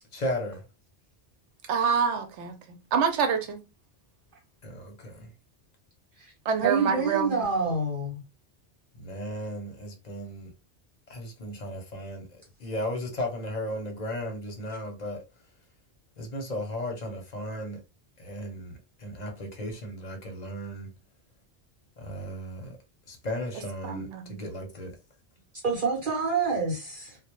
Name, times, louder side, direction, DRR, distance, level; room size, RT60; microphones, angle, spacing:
voice 1, 0.1-0.6 4.6-5.3 9.0-10.5 11.1-15.2 16.2-17.8 18.2-20.9 22.0-22.7 23.1-24.9, left 1 dB, 45° left, 0.7 m, -35 dB
voice 2, 1.7-2.5 2.9-3.6 6.5-7.5 23.8-24.4, right 6 dB, 85° right, 0.9 m, -26 dB
voice 3, 6.6-8.2 25.6-27.2, right 4 dB, 50° right, 0.9 m, -27 dB
2.2 x 2.0 x 2.9 m
omnidirectional pair, 1.2 m